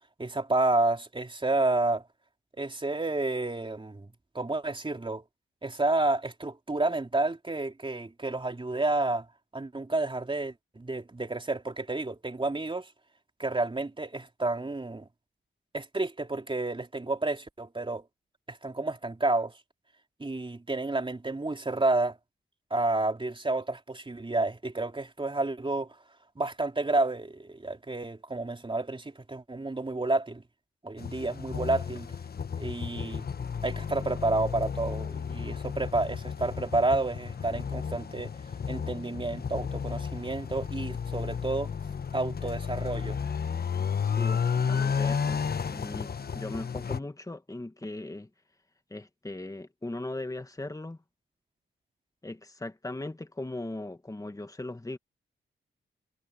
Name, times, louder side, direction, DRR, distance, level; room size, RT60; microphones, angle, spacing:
voice 1, 0.2-2.0 2.6-4.1 4.3-5.2 5.6-9.3 9.5-12.9 13.4-15.1 15.7-18.0 18.5-19.5 20.2-22.2 22.7-25.9 26.4-30.4 30.8-32.1 32.6-33.3 33.6-38.3 38.7-41.7 42.1-43.2, right 2 dB, 25° right, 3.7 m, -30 dB
sound 1, 31.0-47.0, left 6 dB, 50° left, 1.2 m, -32 dB
voice 2, 44.0-48.3 48.9-51.0 52.2-55.0, left 2 dB, 15° left, 2.0 m, -39 dB
cardioid pair, 60°, 21 cm